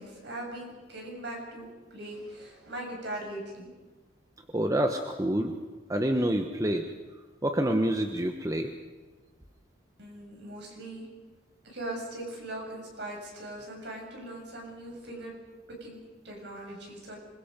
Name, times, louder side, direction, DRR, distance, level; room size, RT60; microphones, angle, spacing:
voice 1, 0.0-3.7 10.0-11.1 11.6-15.3 15.7-17.2, right 1 dB, 60° right, 0 dB, 6.7 m, -40 dB
voice 2, 4.5-5.5 5.9-6.8 7.4-8.7, right 1 dB, 20° right, 5 dB, 1.1 m, -27 dB
26.5 x 22.0 x 5.3 m, 1.3 s
head